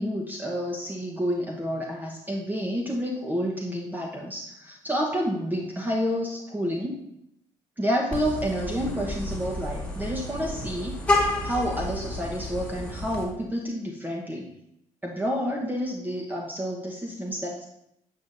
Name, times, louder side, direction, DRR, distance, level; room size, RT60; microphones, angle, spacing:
voice 1, 0.0-7.0 7.8-14.5 15.0-17.6, equal, 10° right, -2 dB, 1.1 m, -29 dB
Vehicle horn car horn honking, 8.1-13.2, left 1 dB, 10° left, 1.9 m, -30 dB
8.3 x 5.9 x 2.7 m, 0.79 s
hypercardioid pair, 55°, 15 cm